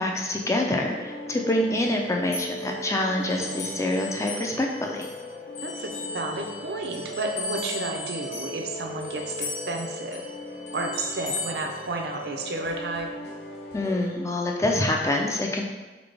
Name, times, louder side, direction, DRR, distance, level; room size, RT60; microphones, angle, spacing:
voice 1, 0.0-5.1 13.7-15.6, left 1 dB, 15° left, 1 dB, 0.4 m, -26 dB
sound 1, 0.5-14.1, equal, 70° left, 0.7 m, -39 dB
sound 2, 1.8-5.2 5.5-12.5, left 3 dB, 45° left, 1.0 m, -38 dB
voice 2, 5.6-10.2 10.7-13.1, right 2 dB, 70° right, 2 dB, 0.6 m, -32 dB
4.0 x 3.8 x 3.3 m, 1.2 s
head